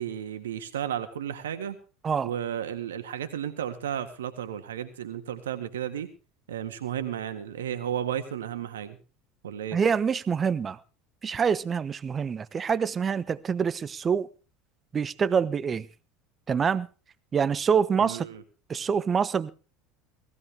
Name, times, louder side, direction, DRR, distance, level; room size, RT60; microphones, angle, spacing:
voice 1, 0.0-1.8 2.2-6.1 6.5-9.0 9.4-9.8 18.0-18.4, right 9 dB, 80° right, 1.7 m, -33 dB
voice 2, 9.7-10.8 11.2-14.3 14.9-15.9 16.5-16.9 17.3-18.3 18.7-19.5, right 6 dB, 30° right, 1.0 m, -26 dB
18.5 x 15.5 x 3.5 m
hypercardioid pair, 75°, 0 cm